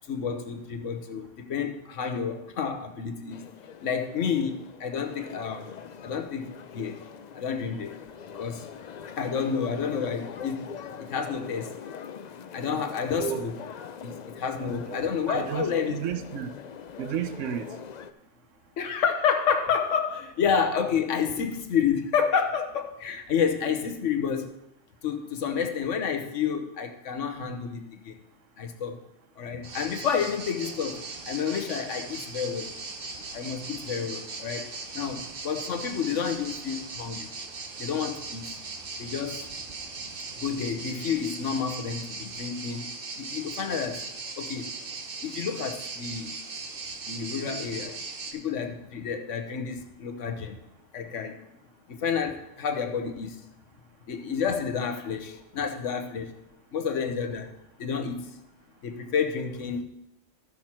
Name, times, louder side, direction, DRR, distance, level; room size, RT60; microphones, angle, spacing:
voice 1, 0.0-3.5 3.8-5.7 6.0-7.1 7.3-8.0 8.3-8.8 9.1-10.6 11.0-11.8 12.5-13.6 14.0-16.0 18.8-24.5 25.0-28.2 28.6-29.0 29.4-32.7 33.3-34.7 34.9-37.3 37.8-38.5 39.0-39.5 40.4-42.9 43.2-44.0 44.4-44.7 45.2-46.4 47.1-48.0 48.3-50.6 50.9-51.4 51.9-53.4 54.1-56.3 56.7-58.4 58.8-59.8, left 6 dB, 80° left, 5 dB, 1.3 m, -30 dB
sound 1, 3.3-18.1, left 7 dB, 65° left, 0.4 m, -43 dB
voice 2, 15.3-16.5 17.0-17.7, right 9 dB, 80° right, 8 dB, 1.1 m, -32 dB
sound 2, 29.6-48.3, right 4 dB, 50° right, 1.1 m, -39 dB
14.0 x 5.9 x 4.4 m, 0.87 s
omnidirectional pair, 1.3 m